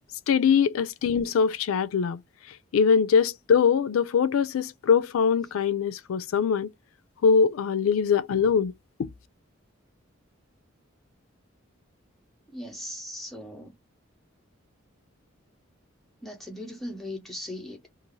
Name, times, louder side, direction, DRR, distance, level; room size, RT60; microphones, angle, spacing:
voice 1, 0.3-2.2 2.7-6.7 7.2-8.7 9.0-9.1, left 6 dB, 90° left, 0.4 m, -22 dB
voice 2, 12.5-13.7 16.2-17.9, left 1 dB, ahead, 0.8 m, -38 dB
2.6 x 2.4 x 3.1 m
head